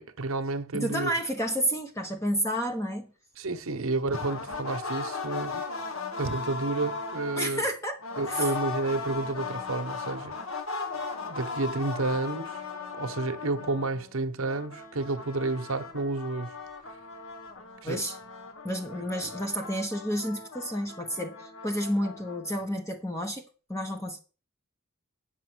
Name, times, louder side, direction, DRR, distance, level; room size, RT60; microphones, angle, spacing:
voice 1, 0.0-1.1 3.4-5.6 6.2-7.7 8.2-10.4 11.3-12.6 13.0-16.5 17.8-18.0, right 3 dB, 70° right, 1.0 m, -30 dB
voice 2, 0.7-3.1 7.4-8.0 8.3-8.5 17.8-18.1 18.6-24.2, equal, 15° left, 1.0 m, -30 dB
sound 1, 4.1-7.5 8.0-14.1 14.4-22.6, left 4 dB, 65° left, 1.3 m, -37 dB
9.0 x 6.4 x 6.2 m
head